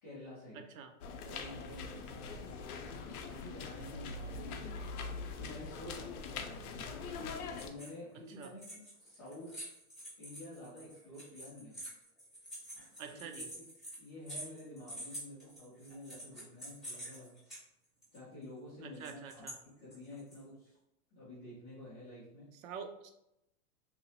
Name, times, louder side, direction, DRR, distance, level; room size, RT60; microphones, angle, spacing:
voice 1, 0.0-0.7 1.2-4.8 5.3-7.1 7.6-9.7 10.2-11.8 13.1-13.6 14.0-17.4 18.1-19.5 19.8-20.8 21.1-22.5, left 1 dB, 15° left, -11 dB, 0.3 m, -50 dB
voice 2, 0.5-0.9 8.4-8.5 13.0-13.5 18.8-19.5 22.5-23.1, right 6 dB, 65° right, 6 dB, 0.5 m, -46 dB
sound 1, 1.0-7.7, left 4 dB, 75° left, 0.5 m, -43 dB
sound 2, 7.5-8.0 8.3-17.6 18.0-18.2 18.9-19.5 19.9-20.4, right 1 dB, ahead, 1.1 m, -47 dB
2.8 x 2.0 x 2.7 m, 0.84 s
hypercardioid pair, 145°, 45 cm